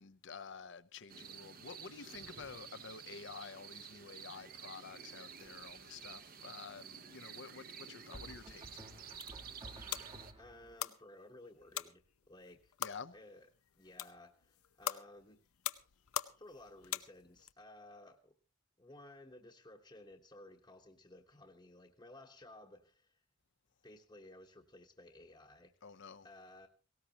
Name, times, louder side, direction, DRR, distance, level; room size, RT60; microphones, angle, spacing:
voice 1, 0.0-9.1 12.8-13.1 25.8-26.3, left 5 dB, 55° left, 0.7 m, -50 dB
sound 1, 1.1-10.3, right 7 dB, 40° right, 0.9 m, -51 dB
sound 2, 5.4-5.9 8.1-10.8, right 1 dB, 25° right, 1.3 m, -53 dB
sound 3, 8.9-17.5, left 10 dB, 90° left, 0.8 m, -44 dB
voice 2, 10.4-12.0 12.3-12.7 13.1-13.5 13.8-15.4 16.4-18.3 18.8-23.2 23.8-25.7 26.2-26.7, left 1 dB, 20° left, 1.1 m, -56 dB
18.5 x 17.5 x 2.9 m
head